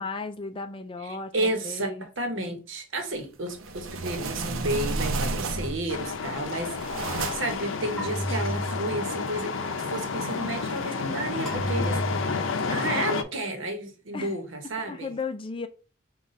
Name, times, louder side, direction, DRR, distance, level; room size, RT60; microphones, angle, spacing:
voice 1, 0.0-2.1 2.3-2.5 14.1-14.4 14.9-15.7, left 4 dB, 25° left, 0.4 m, -35 dB
voice 2, 1.0-1.9 2.2-15.1, right 1 dB, 70° right, 1.0 m, -32 dB
sound 1, 3.5-5.9 6.4-7.6, right 3 dB, 90° right, 0.6 m, -31 dB
sound 2, 5.5-6.2 8.0-9.3 11.5-12.5, equal, ahead, 1.7 m, -32 dB
sound 3, 5.9-13.2, left 4 dB, 75° left, 0.5 m, -31 dB
5.0 x 2.3 x 4.0 m
head